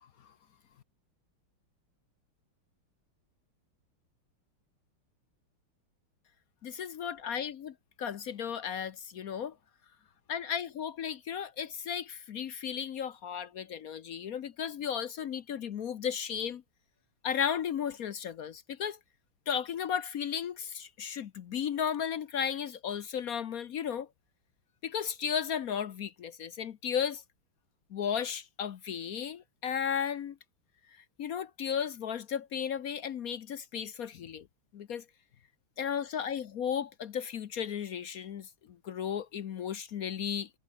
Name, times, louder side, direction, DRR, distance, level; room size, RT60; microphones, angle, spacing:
voice 1, 6.6-9.5 10.3-16.6 17.2-19.0 19.5-24.1 24.8-27.2 27.9-30.4 31.2-34.5 34.7-35.0 35.8-38.5 38.8-40.5, left 8 dB, 60° left, 0.9 m, -34 dB
omnidirectional pair, 2.4 m